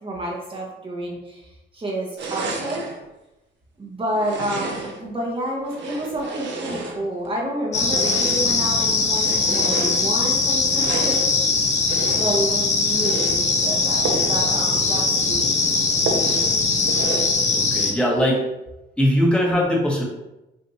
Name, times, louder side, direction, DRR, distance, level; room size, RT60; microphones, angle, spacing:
voice 1, 0.0-2.8 3.8-11.3 12.1-15.6, right 1 dB, 25° right, -3 dB, 1.0 m, -29 dB
sound 1, 2.2-3.0 4.1-5.1 5.6-7.3 7.9-8.6 9.2-10.0 10.7-11.3 11.9-12.4 12.9-13.4 14.0-14.4 14.8-14.9 15.2-15.3 16.1-16.5 16.9-17.4, right 3 dB, 65° right, 0.8 m, -30 dB
sound 2, 7.7-17.9, left 3 dB, 35° left, 0.7 m, -21 dB
voice 2, 17.5-18.4 19.0-20.0, equal, 5° left, -4 dB, 1.2 m, -20 dB
5.5 x 2.5 x 3.0 m, 0.96 s
cardioid pair, 90°, 20 cm